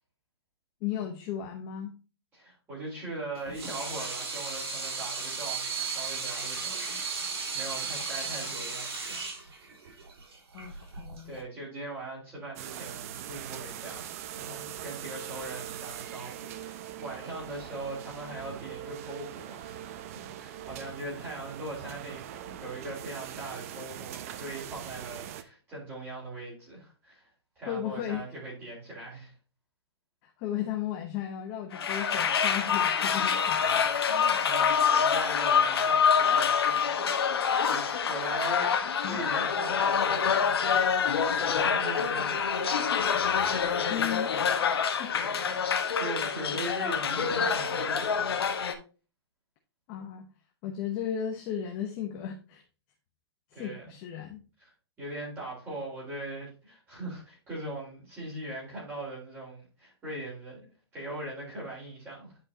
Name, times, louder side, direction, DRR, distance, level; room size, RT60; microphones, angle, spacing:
voice 1, 0.8-1.9 10.5-11.4 27.7-28.2 30.4-33.6 39.0-39.2 43.9-44.3 45.0-45.1 49.9-50.3 50.6-52.6 53.5-54.4, left 10 dB, 25° left, 0.9 m, -35 dB
voice 2, 2.3-6.8 7.1-9.2 10.7-10.8 11.2-19.8 20.4-27.3 27.6-29.3 34.0-41.0 41.4-42.9 45.2-45.6 46.0-48.4 53.5-53.9 54.6-54.7 55.0-62.4, right 1 dB, 15° right, 4.1 m, -40 dB
Water tap faucet / Sink (filling or washing), 3.3-11.4, right 5 dB, 65° right, 4.0 m, -35 dB
sound 1, 12.6-25.4, right 11 dB, 35° right, 0.6 m, -41 dB
sound 2, 31.7-48.7, left 7 dB, 65° left, 1.3 m, -26 dB
10.0 x 5.3 x 2.8 m
hypercardioid pair, 165°, 14 cm